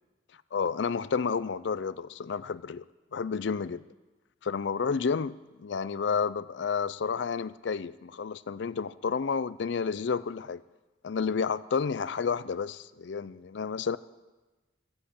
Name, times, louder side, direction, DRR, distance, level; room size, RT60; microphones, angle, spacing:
voice 1, 0.5-2.9 3.1-3.8 4.4-10.6 11.0-14.0, left 5 dB, 70° left, 0.4 m, -30 dB
14.5 x 9.7 x 8.5 m
head